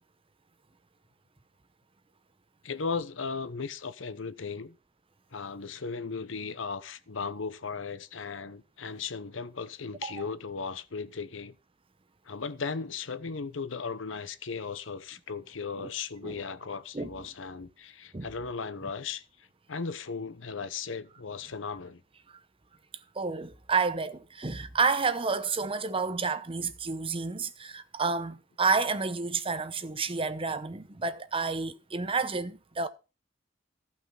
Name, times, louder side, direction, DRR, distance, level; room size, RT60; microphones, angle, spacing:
voice 1, 2.6-4.7 5.3-11.5 12.3-19.2 19.7-22.0, left 5 dB, 85° left, 0.9 m, -36 dB
voice 2, 23.1-32.9, right 4 dB, 30° right, 0.9 m, -30 dB
14.5 x 5.9 x 5.7 m
head